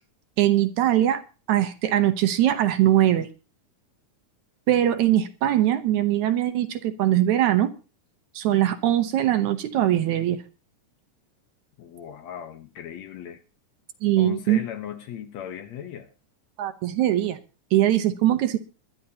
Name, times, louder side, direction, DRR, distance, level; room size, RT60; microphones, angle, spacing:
voice 1, 0.4-1.2 1.5-3.3 4.7-7.7 8.4-10.4 14.0-14.6 16.6-17.4 17.7-18.6, right 12 dB, 70° right, 10 dB, 2.2 m, -21 dB
voice 2, 11.8-13.4 14.2-16.1, left 9 dB, 65° left, 8 dB, 2.1 m, -37 dB
22.5 x 11.5 x 2.8 m, 0.32 s
omnidirectional pair, 3.7 m